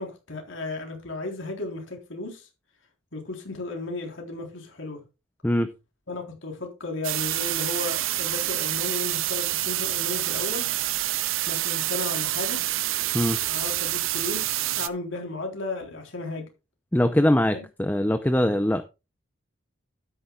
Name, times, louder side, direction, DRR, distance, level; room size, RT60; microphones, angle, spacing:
voice 1, 0.0-2.5 3.1-5.0 6.1-10.7 11.5-12.6 13.5-16.5 17.5-17.6, left 2 dB, 75° left, 3.7 m, -34 dB
sound 1, 7.0-14.9, right 15 dB, 80° right, 0.6 m, -27 dB
voice 2, 16.9-18.8, left 1 dB, 10° left, 0.5 m, -22 dB
12.5 x 10.5 x 2.3 m
head